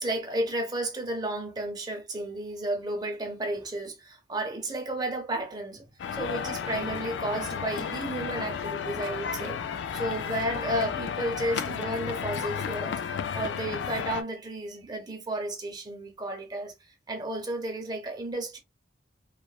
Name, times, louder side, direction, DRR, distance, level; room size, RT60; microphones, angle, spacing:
voice 1, 0.0-5.9 6.1-9.6 9.9-13.0 13.3-16.7 17.1-18.6, right 1 dB, 25° right, 0.7 m, -32 dB
sound 1, 6.0-14.2, left 7 dB, 85° left, 0.3 m, -33 dB
3.1 x 2.1 x 2.3 m
head